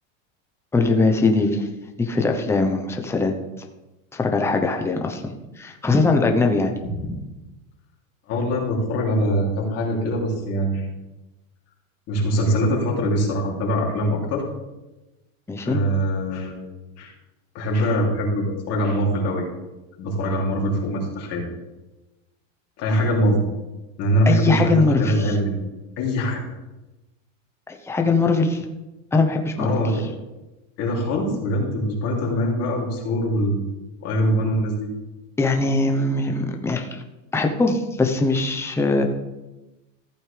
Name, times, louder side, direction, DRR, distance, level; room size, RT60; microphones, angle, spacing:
voice 1, 0.7-1.7 2.0-3.3 4.1-6.7 15.5-15.8 24.3-25.3 27.7-28.7 29.1-29.8 35.4-37.0 37.3-39.0, left 3 dB, 5° left, 4 dB, 0.9 m, -21 dB
voice 2, 8.3-10.9 12.1-14.4 15.6-16.7 17.0-17.1 17.5-19.5 20.0-21.4 22.8-23.4 24.0-25.5 26.0-26.4 29.6-30.1 30.8-33.6 34.0-34.9, equal, 40° left, -2 dB, 3.1 m, -23 dB
14.5 x 8.5 x 3.4 m, 1.0 s
supercardioid pair, 145°, 40 cm